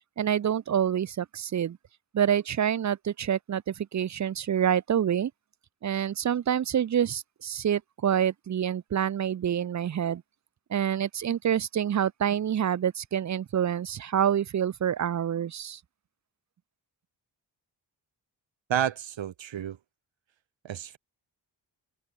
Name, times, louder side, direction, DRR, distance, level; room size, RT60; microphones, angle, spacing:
voice 1, 0.2-1.8 2.1-5.3 5.8-10.2 10.7-15.8, right 9 dB, 40° right, 0.4 m, -27 dB
voice 2, 18.7-19.8 20.6-21.0, right 10 dB, 80° right, 1.4 m, -30 dB
wide cardioid pair, 165°, 44 cm